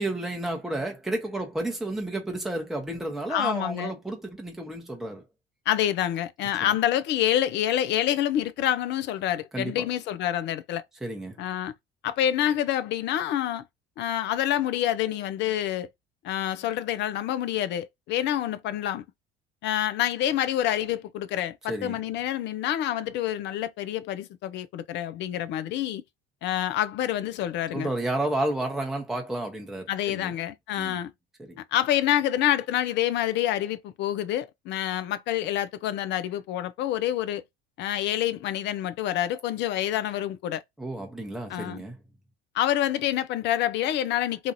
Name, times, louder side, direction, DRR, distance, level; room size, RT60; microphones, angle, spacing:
voice 1, 0.0-5.2 6.6-6.7 9.5-9.8 11.0-11.4 21.7-22.0 27.7-30.3 30.8-31.0 31.4-31.6 40.8-42.0, right 1 dB, ahead, 0.8 m, -31 dB
voice 2, 3.3-3.9 5.7-10.8 11.4-11.7 12.0-13.6 14.0-15.9 16.2-19.1 19.6-26.0 26.4-27.9 29.9-31.1 31.7-37.4 37.8-40.6 41.5-41.8 42.5-44.5, left 12 dB, 35° left, 0.4 m, -27 dB
2.8 x 2.5 x 2.5 m
figure-of-eight pair, 60°, 31 cm